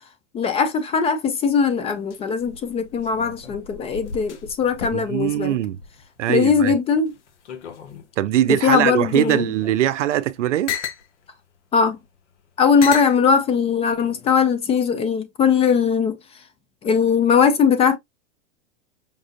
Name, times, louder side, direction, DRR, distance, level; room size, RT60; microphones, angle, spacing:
voice 1, 0.3-5.6 6.3-7.1 8.5-9.5 11.7-12.0 12.6-16.2 16.8-18.0, left 6 dB, 15° left, 0.4 m, -20 dB
sound 1, 1.5-6.6 7.0-8.2 8.8-11.1 11.9-12.0 12.8-13.2 14.0-14.4, left 8 dB, 70° left, 1.0 m, -35 dB
voice 2, 4.9-5.8 6.2-6.7 8.2-10.7, right 12 dB, 80° right, 0.5 m, -21 dB
5.3 x 2.4 x 2.5 m
hypercardioid pair, 115°, 36 cm